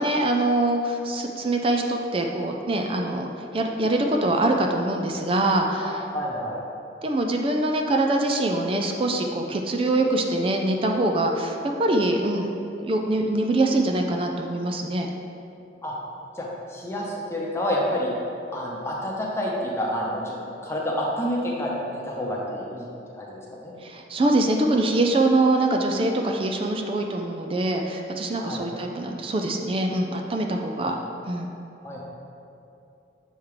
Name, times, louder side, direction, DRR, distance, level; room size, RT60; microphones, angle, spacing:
voice 1, 0.0-6.0 7.0-12.5 12.8-15.1 23.8-31.0 31.3-31.5, right 2 dB, 30° right, 2 dB, 0.4 m, -24 dB
voice 2, 5.8-6.6 15.8-15.9 16.3-18.1 18.5-20.4 20.6-22.9 23.2-23.7 28.4-28.6 30.8-31.0 31.8-32.0, equal, 15° left, -4 dB, 0.9 m, -29 dB
7.1 x 3.6 x 4.8 m, 2.7 s
head